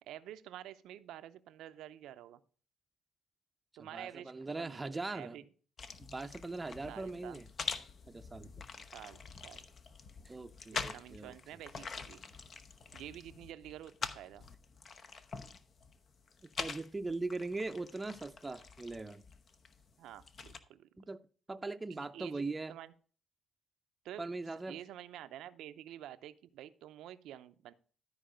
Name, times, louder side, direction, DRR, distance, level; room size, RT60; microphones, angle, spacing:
voice 1, 0.0-2.4 3.8-5.4 6.9-7.4 8.9-9.6 10.7-12.2 12.9-14.5 20.0-20.9 21.9-22.9 24.0-24.2 24.7-27.7, right 12 dB, 85° right, 0.6 m, -49 dB
voice 2, 3.8-5.4 6.0-7.5 8.1-8.6 10.2-11.3 16.6-19.2 21.0-21.2 21.5-22.7 24.2-24.8, right 3 dB, 20° right, 0.6 m, -40 dB
sound 1, 5.8-20.6, left 5 dB, 50° left, 0.8 m, -45 dB
12.5 x 4.8 x 5.0 m
cardioid pair, 90°, 0 cm